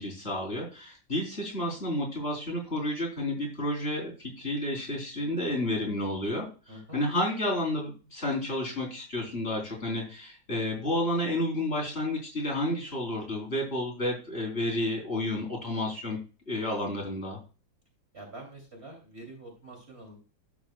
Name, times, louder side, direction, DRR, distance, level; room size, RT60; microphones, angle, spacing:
voice 1, 0.0-6.5 6.9-16.2 16.5-17.4, left 1 dB, 30° left, -1 dB, 3.8 m, -31 dB
voice 2, 6.7-7.0 18.1-20.2, right 2 dB, 30° right, 1 dB, 3.0 m, -46 dB
12.0 x 8.3 x 2.2 m, 0.33 s
omnidirectional pair, 2.1 m